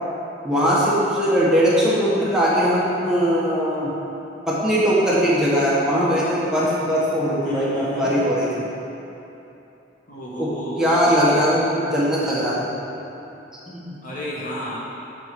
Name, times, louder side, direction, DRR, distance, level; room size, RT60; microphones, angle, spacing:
voice 1, 0.4-3.9 4.5-8.7 10.4-10.5 10.8-12.6 13.7-14.0, equal, 5° right, -8 dB, 1.4 m, -20 dB
voice 2, 7.4-8.1 10.1-11.4 14.0-14.8, equal, 45° left, -6 dB, 1.5 m, -32 dB
7.9 x 4.6 x 6.1 m, 3.0 s
head